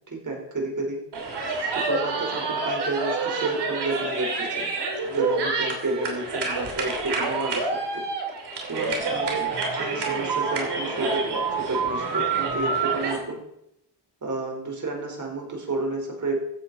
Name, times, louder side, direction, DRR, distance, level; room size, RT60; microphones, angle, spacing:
voice 1, 0.1-1.0 1.7-4.7 5.0-8.0 8.7-13.4 14.2-16.3, right 2 dB, 45° right, 1 dB, 4.2 m, -31 dB
sound 1, 1.1-13.2, right 4 dB, 65° right, 2.9 m, -27 dB
15.0 x 8.0 x 4.1 m, 0.79 s
cardioid pair, 70°, 43 cm